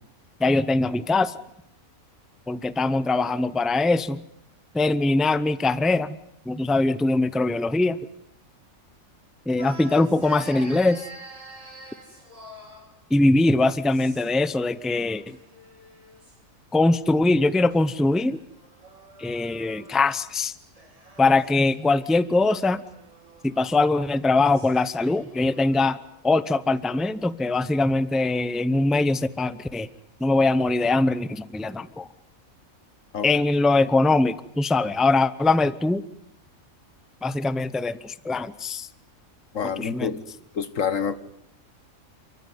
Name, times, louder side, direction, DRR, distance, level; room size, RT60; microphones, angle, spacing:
voice 1, 0.4-1.3 2.5-4.2 4.7-6.2 6.5-8.0 9.5-11.0 13.1-15.4 16.7-18.4 19.2-20.5 21.2-22.8 23.4-26.0 26.2-29.9 30.2-32.1 33.2-36.0 37.2-38.9 39.6-40.1, left 2 dB, ahead, 15 dB, 0.5 m, -22 dB
sound 1, 9.6-13.0 13.8-14.4 14.7-16.4 17.4-20.2 20.6-26.2, right 1 dB, 25° right, 2.9 m, -47 dB
voice 2, 39.5-40.2 40.5-41.1, left 7 dB, 70° left, 12 dB, 1.6 m, -27 dB
29.5 x 14.0 x 9.5 m, 0.84 s
omnidirectional pair, 1.4 m